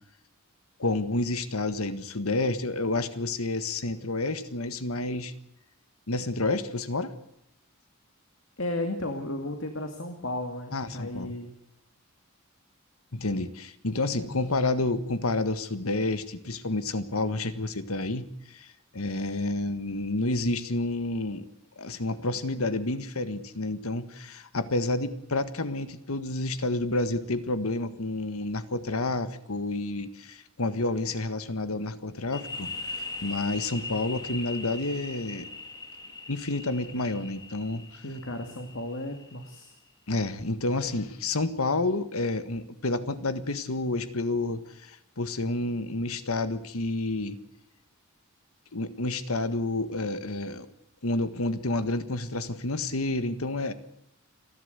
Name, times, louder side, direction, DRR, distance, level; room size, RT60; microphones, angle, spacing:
voice 1, 0.8-5.3 6.1-7.1 10.7-11.3 13.1-21.5 21.8-32.7 33.2-35.5 36.3-38.0 40.1-47.4 48.7-50.7 51.0-53.7, left 2 dB, 85° left, 11 dB, 1.6 m, -29 dB
voice 2, 8.6-11.5 14.1-14.3 38.0-39.7, left 1 dB, 65° left, 5 dB, 2.3 m, -34 dB
sound 1, 32.3-39.8, left 3 dB, 20° left, 1.8 m, -40 dB
29.5 x 12.0 x 8.1 m, 0.80 s
head